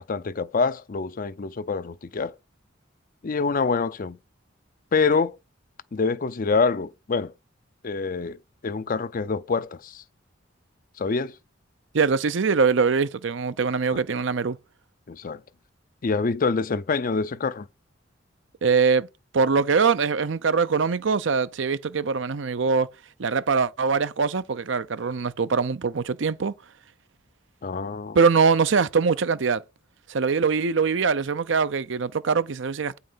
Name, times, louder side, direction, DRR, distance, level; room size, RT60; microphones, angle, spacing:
voice 1, 0.0-2.3 3.2-4.2 4.9-5.4 5.9-7.3 7.8-8.4 8.6-10.0 11.0-11.3 13.9-14.0 15.1-15.4 16.0-17.7 27.6-28.2, left 4 dB, 45° left, 0.5 m, -26 dB
voice 2, 11.9-14.6 18.6-19.1 19.3-22.9 23.2-26.5 28.1-29.6 30.1-33.0, right 5 dB, 65° right, 0.6 m, -22 dB
8.7 x 5.5 x 5.6 m
head